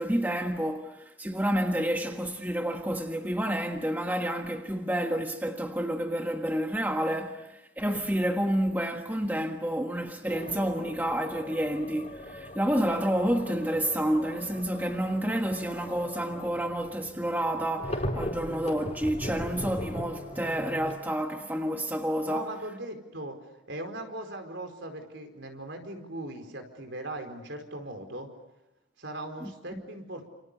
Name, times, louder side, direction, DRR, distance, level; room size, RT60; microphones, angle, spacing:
voice 1, 0.0-22.5 29.4-29.8, right 1 dB, 10° right, 1.4 m, -29 dB
sound 1, 7.8-8.1 10.3-21.0, equal, 35° left, 4.1 m, -39 dB
voice 2, 22.2-23.4 23.7-28.3 29.0-30.3, right 1 dB, 60° right, 4.7 m, -39 dB
30.0 x 28.5 x 6.8 m
head